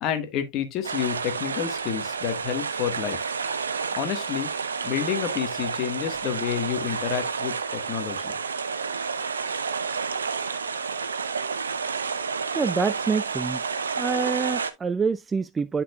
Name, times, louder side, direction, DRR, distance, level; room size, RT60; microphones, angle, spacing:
voice 1, 0.0-3.2 4.0-4.5 4.8-8.4, left 9 dB, 35° left, 1.6 m, -29 dB
sound 1, 0.8-14.7, right 5 dB, 70° right, 0.8 m, -30 dB
voice 2, 12.5-13.6 14.0-15.8, right 5 dB, 15° right, 0.3 m, -26 dB
11.5 x 4.5 x 2.4 m
figure-of-eight pair, 90°, 0 cm